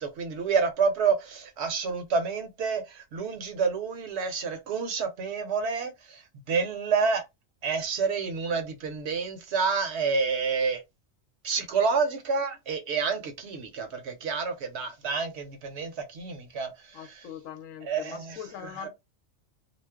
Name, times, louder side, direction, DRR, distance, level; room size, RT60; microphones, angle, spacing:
voice 1, 0.0-7.2 7.6-10.8 11.4-17.3 17.8-18.9, right 5 dB, 65° right, 0.8 m, -29 dB
voice 2, 16.9-18.9, left 9 dB, 85° left, 1.0 m, -41 dB
2.4 x 2.0 x 3.4 m
omnidirectional pair, 1.3 m